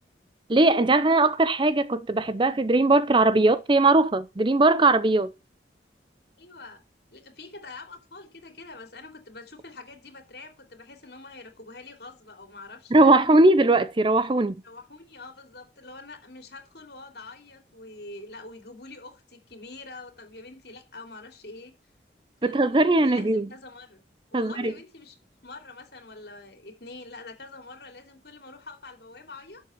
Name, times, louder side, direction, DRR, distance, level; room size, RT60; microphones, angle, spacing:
voice 1, 0.5-5.3 12.9-14.6 22.4-23.5 24.3-24.7, right 2 dB, 30° right, 0.6 m, -20 dB
voice 2, 6.4-6.8 7.1-13.2 14.6-21.7 22.4-24.0 24.3-25.2 25.4-29.6, left 3 dB, 65° left, 3.2 m, -45 dB
12.0 x 7.2 x 4.6 m
head